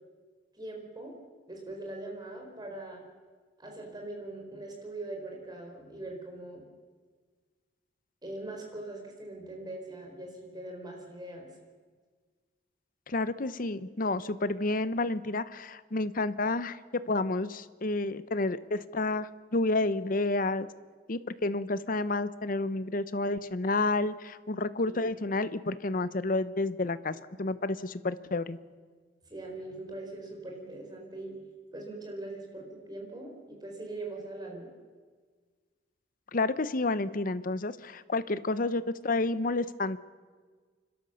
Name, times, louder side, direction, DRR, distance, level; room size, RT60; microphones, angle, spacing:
voice 1, 0.5-1.1 1.5-3.0 3.6-6.6 8.2-11.5 24.9-25.0 29.3-31.4 31.7-34.7, right 2 dB, 25° right, 1 dB, 4.7 m, -41 dB
voice 2, 13.1-20.7 21.1-28.6 36.3-40.0, left 2 dB, 50° left, 14 dB, 0.8 m, -30 dB
29.5 x 12.5 x 7.0 m, 1.5 s
head